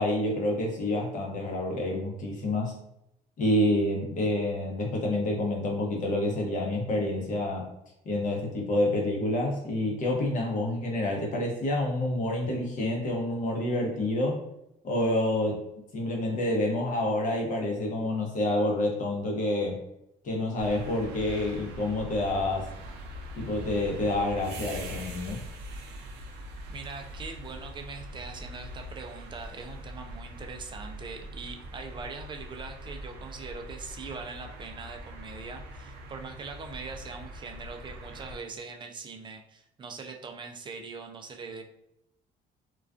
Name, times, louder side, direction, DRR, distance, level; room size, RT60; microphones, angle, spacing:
voice 1, 0.0-2.7 3.4-7.7 8.0-14.4 14.8-15.6 15.9-19.8 20.2-22.7 23.4-25.4, left 1 dB, 50° left, 0 dB, 0.8 m, -28 dB
sound 1, 20.6-38.4, equal, 85° right, 0.5 m, -42 dB
voice 2, 26.7-41.6, right 4 dB, 30° right, 4 dB, 0.3 m, -42 dB
2.3 x 2.2 x 2.4 m, 0.80 s
cardioid pair, 110°, 17 cm